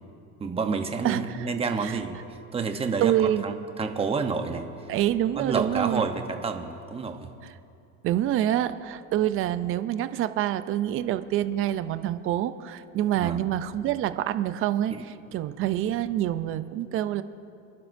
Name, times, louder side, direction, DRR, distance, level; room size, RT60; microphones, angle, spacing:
voice 1, 0.4-2.2 2.5-4.7 5.3-7.3 13.2-13.5 14.9-15.0, right 5 dB, 15° right, 6 dB, 0.9 m, -29 dB
voice 2, 1.0-1.5 1.8-2.0 3.0-3.4 4.9-6.0 8.0-17.2, right 12 dB, 30° right, 12 dB, 0.5 m, -26 dB
29.5 x 11.5 x 2.6 m, 2.6 s
supercardioid pair, 140°, 41 cm